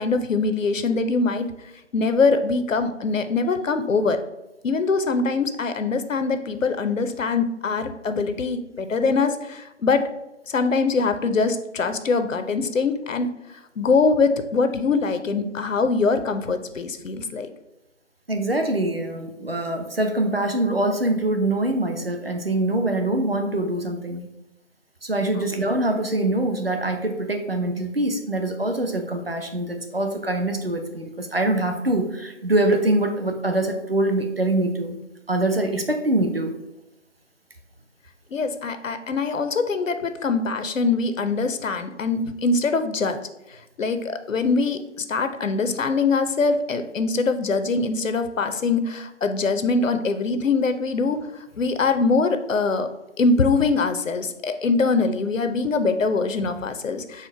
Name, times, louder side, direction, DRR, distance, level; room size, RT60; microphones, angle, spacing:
voice 1, 0.0-1.5 1.9-4.2 4.6-10.1 10.5-17.5 25.3-25.5 38.3-43.2 43.5-51.3 51.6-52.9 53.2-57.3, left 4 dB, 85° left, 9 dB, 0.6 m, -23 dB
voice 2, 18.3-24.3 25.0-35.0 35.3-36.5, right 1 dB, 50° right, 5 dB, 0.5 m, -24 dB
4.3 x 2.1 x 4.6 m, 0.93 s
figure-of-eight pair, 175°, 38 cm